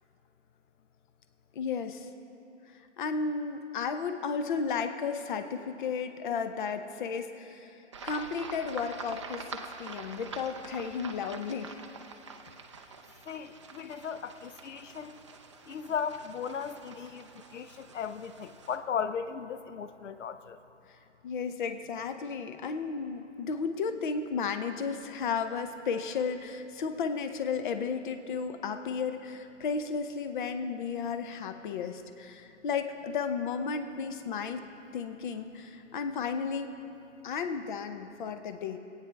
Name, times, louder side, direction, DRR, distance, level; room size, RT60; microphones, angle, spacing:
voice 1, 1.6-2.1 3.0-7.7 8.0-11.7 21.2-34.6 34.9-36.7 37.2-38.8, left 5 dB, 45° left, 8 dB, 0.7 m, -33 dB
sound 1, 7.9-18.8, right 4 dB, 25° right, 0.3 m, -46 dB
voice 2, 13.3-15.1 15.7-20.6, left 7 dB, 80° left, 12 dB, 0.7 m, -36 dB
22.0 x 9.1 x 3.4 m, 2.9 s
hypercardioid pair, 150°, 36 cm